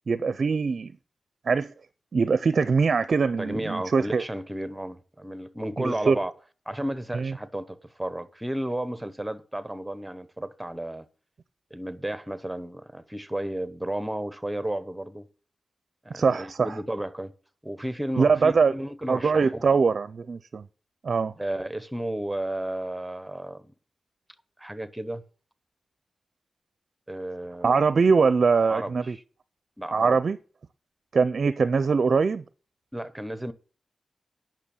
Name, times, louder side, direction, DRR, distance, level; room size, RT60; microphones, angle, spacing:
voice 1, 0.1-0.9 1.5-1.7 2.1-4.2 5.8-6.2 7.1-7.3 16.1-16.8 18.2-18.8 19.1-20.7 21.0-21.3 27.6-29.2 29.9-30.4 31.1-32.4, right 5 dB, 50° right, 0.5 m, -22 dB
voice 2, 3.4-6.3 6.7-11.1 11.7-15.3 16.0-17.3 17.6-19.7 21.4-23.6 24.6-25.2 27.1-27.9 28.7-29.2 29.8-30.2 32.9-33.5, right 1 dB, 5° right, 0.8 m, -33 dB
9.7 x 6.0 x 8.5 m
wide cardioid pair, 175°, 0 cm